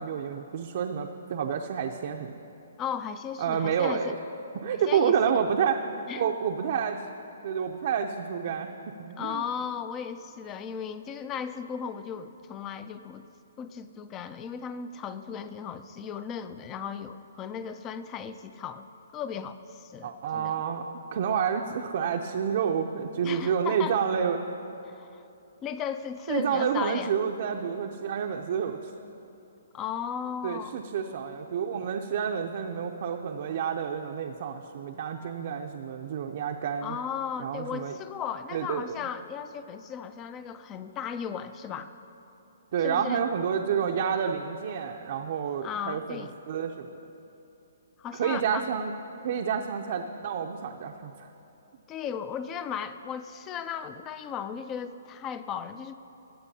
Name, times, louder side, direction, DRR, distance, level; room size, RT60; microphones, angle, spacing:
voice 1, 0.0-2.3 3.4-4.2 4.5-5.8 6.2-7.0 7.4-9.4 20.0-24.4 26.3-28.9 30.4-37.0 37.4-38.0 38.5-39.0 42.7-46.9 48.1-48.9 49.2-51.3, right 7 dB, 50° right, 2 dB, 0.5 m, -29 dB
voice 2, 2.8-4.2 4.7-5.4 6.1-6.3 9.2-13.3 13.6-18.9 19.1-20.5 23.2-24.0 24.9-25.2 25.6-27.1 29.7-30.7 36.8-41.9 42.8-43.2 45.6-46.3 48.0-48.7 51.9-55.9, left 7 dB, 20° left, 12 dB, 0.4 m, -36 dB
20.5 x 8.0 x 2.8 m, 2.9 s
hypercardioid pair, 155°, 0 cm